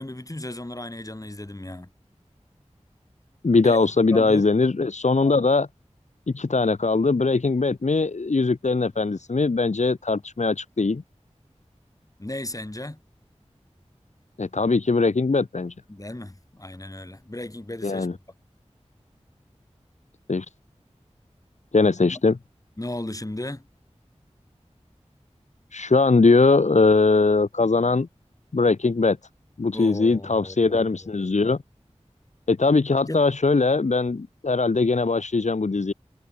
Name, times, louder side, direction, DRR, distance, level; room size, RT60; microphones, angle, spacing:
voice 1, 0.0-1.9 3.6-4.4 12.2-13.0 15.9-18.1 22.1-22.2 22.8-23.6 29.7-31.1 33.1-33.2, left 1 dB, 30° left, 3.1 m, -35 dB
voice 2, 3.4-5.7 6.3-11.0 14.4-15.7 17.8-18.1 20.3-20.5 21.7-22.4 25.7-28.1 28.5-29.2 29.6-31.6 32.5-35.9, left 3 dB, 80° left, 1.3 m, -21 dB
wide cardioid pair, 45°, 12 cm